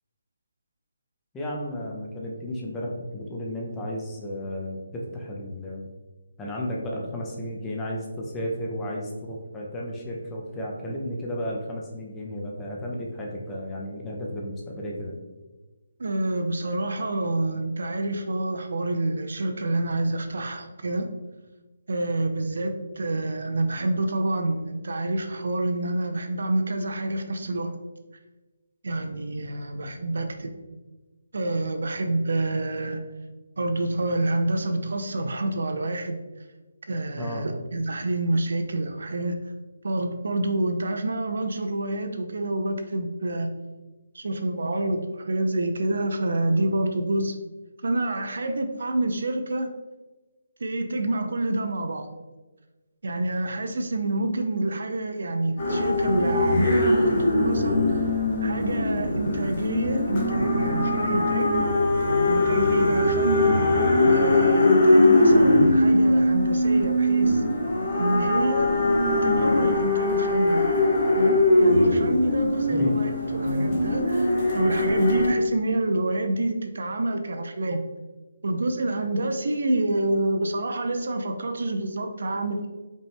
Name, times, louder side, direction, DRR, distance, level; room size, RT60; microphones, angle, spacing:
voice 1, 1.3-5.8 6.4-15.2 37.2-37.5 72.7-73.0, equal, 10° left, -2 dB, 0.5 m, -33 dB
voice 2, 16.0-21.1 21.9-27.7 28.8-30.6 31.3-33.0 33.6-36.2 36.9-39.4 39.8-43.5 44.1-47.4 47.8-49.7 50.6-52.1 53.0-58.0 58.4-61.5 62.3-63.6 64.0-67.4 68.0-68.7 69.2-70.7 71.2-77.8 78.4-82.7, right 2 dB, 70° right, 6 dB, 0.5 m, -27 dB
sound 1, 55.6-75.3, left 1 dB, 30° left, 1.1 m, -21 dB
5.1 x 2.1 x 3.3 m, 1.2 s
hypercardioid pair, 165°, 0 cm